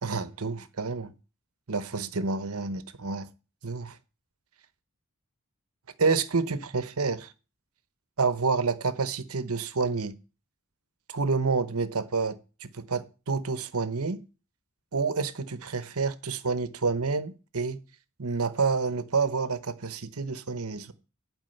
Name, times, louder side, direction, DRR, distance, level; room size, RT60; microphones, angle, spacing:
voice 1, 0.0-1.1 1.7-3.3 3.6-4.0 6.0-7.3 8.2-10.1 11.1-14.2 14.9-17.8 18.2-20.9, right 4 dB, 75° right, 1.0 m, -28 dB
11.0 x 4.9 x 7.9 m
head